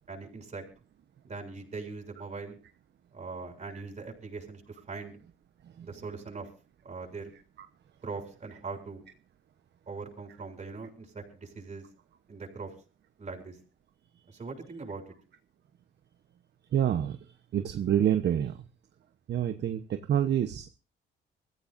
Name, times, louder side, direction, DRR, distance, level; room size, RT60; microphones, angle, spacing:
voice 1, 0.1-0.6 1.2-2.6 3.1-5.2 5.8-6.5 6.8-7.3 8.0-9.0 9.9-11.9 12.3-12.7 13.2-13.6 14.3-15.0, right 4 dB, 35° right, 2 dB, 7.2 m, -41 dB
voice 2, 16.7-17.2 17.5-18.6 19.3-20.7, right 10 dB, 60° right, 8 dB, 1.0 m, -27 dB
24.0 x 15.0 x 2.6 m, 0.35 s
cardioid pair, 90°, 20 cm